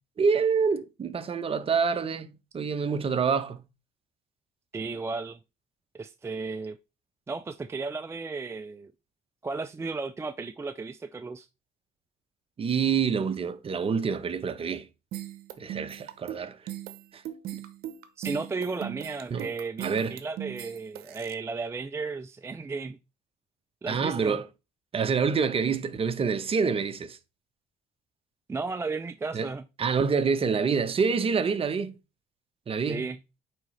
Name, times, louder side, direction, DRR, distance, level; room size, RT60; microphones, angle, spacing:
voice 1, 0.2-3.6 12.6-14.9 15.6-16.6 17.1-17.2 19.3-19.5 19.8-20.2 23.9-24.5 24.9-27.2 29.3-29.5 29.8-31.9 32.7-33.1, right 5 dB, 35° right, 0.9 m, -27 dB
voice 2, 4.7-5.4 5.9-6.8 7.3-8.9 9.4-11.5 18.2-23.0 23.8-24.4 28.5-29.6 32.9-33.2, right 4 dB, 15° right, 0.4 m, -34 dB
sound 1, 15.1-21.3, right 12 dB, 75° right, 0.8 m, -39 dB
8.8 x 3.7 x 3.2 m
cardioid pair, 90°, 16 cm